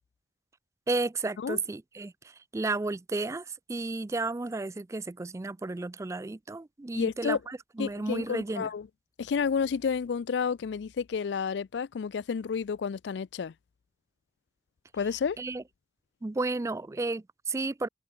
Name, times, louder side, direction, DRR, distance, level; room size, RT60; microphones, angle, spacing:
voice 1, 0.9-8.7 15.4-15.6 16.2-17.9, right 3 dB, 15° right, 0.3 m, -33 dB
voice 2, 6.9-7.4 7.8-8.9 9.2-13.5 14.9-15.4, left 6 dB, 85° left, 0.4 m, -30 dB
head